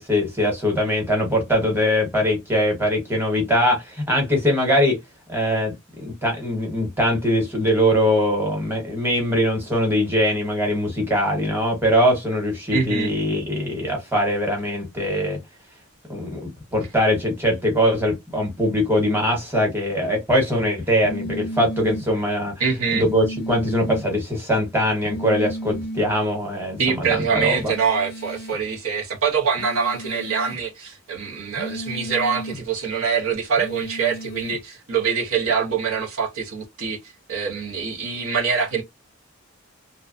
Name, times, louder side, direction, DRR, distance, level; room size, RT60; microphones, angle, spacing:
voice 1, 0.0-5.0 5.3-15.4 16.1-22.5 22.9-27.7, equal, 10° right, 1.0 m, -22 dB
voice 2, 12.7-13.1 22.6-23.0 26.8-37.0 37.3-38.8, right 6 dB, 80° right, 0.8 m, -24 dB
sound 1, 21.0-22.1 23.0-24.1 25.0-26.1 27.6-28.6 29.6-30.6 31.6-32.6 33.6-34.6, equal, 45° left, 0.3 m, -33 dB
2.6 x 2.2 x 2.5 m
head